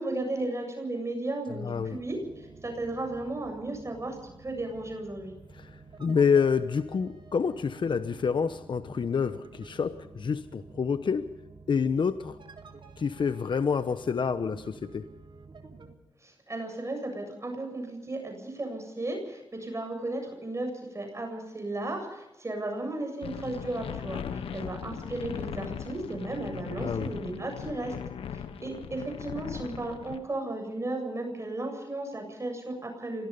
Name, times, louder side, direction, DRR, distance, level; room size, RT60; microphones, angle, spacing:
voice 1, 0.0-5.3 16.2-27.9 28.3-33.3, right 2 dB, 30° right, 3 dB, 7.6 m, -35 dB
voice 2, 1.6-2.0 5.5-5.7 6.0-11.3 11.7-12.4 13.0-15.0 26.8-27.1, left 6 dB, 60° left, 11 dB, 1.0 m, -27 dB
sound 1, 1.7-16.0, right 4 dB, 60° right, 3.7 m, -50 dB
sound 2, 23.2-30.2, left 8 dB, 85° left, 1.3 m, -38 dB
25.0 x 19.0 x 5.5 m, 0.96 s
supercardioid pair, 50°, 9 cm